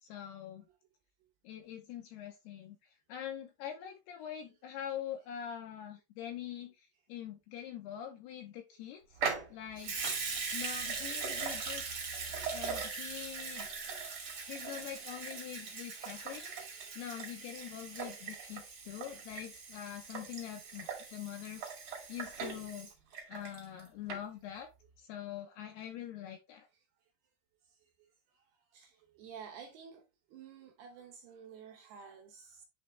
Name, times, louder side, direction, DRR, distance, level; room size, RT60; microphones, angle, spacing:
voice 1, 0.0-0.7 1.4-2.8 3.1-9.2 9.5-10.0 10.5-12.0 12.5-13.7 14.4-22.9 23.3-24.7 25.0-26.7, left 10 dB, 75° left, 2.4 m, -44 dB
Water tap faucet / Sink (filling or washing) / Liquid, 9.2-23.8 24.1-24.2, right 5 dB, 50° right, 1.5 m, -40 dB
voice 2, 28.7-30.0 30.3-32.7, right 7 dB, 75° right, 2.5 m, -51 dB
10.0 x 3.5 x 3.2 m
omnidirectional pair, 5.5 m